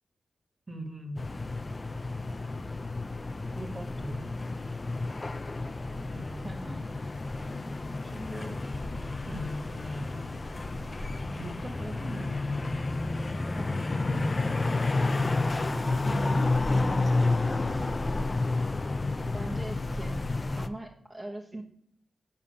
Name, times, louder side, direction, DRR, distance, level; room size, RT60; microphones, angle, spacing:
voice 1, 0.7-1.3 3.5-4.3 6.1-6.4 8.0-8.6 9.3-10.2 11.3-12.4 15.5-17.8, right 1 dB, 35° right, 4 dB, 1.7 m, -40 dB
sound 1, 1.2-20.7, left 3 dB, 35° left, 0.6 m, -30 dB
voice 2, 6.4-6.8 13.5-14.0 19.3-20.2 20.6-21.6, right 1 dB, 15° right, -2 dB, 1.2 m, -41 dB
7.0 x 5.6 x 6.6 m, 0.65 s
cardioid pair, 55°, 0 cm